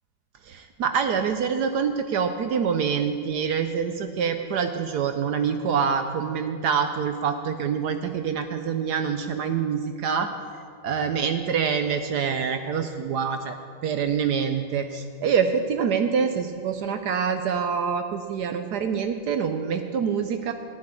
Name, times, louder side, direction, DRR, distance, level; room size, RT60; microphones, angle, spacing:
voice 1, 0.5-10.3 10.8-13.5 13.8-20.5, right 6 dB, 70° right, 7 dB, 1.0 m, -26 dB
12.5 x 6.5 x 9.6 m, 2.2 s
omnidirectional pair, 2.2 m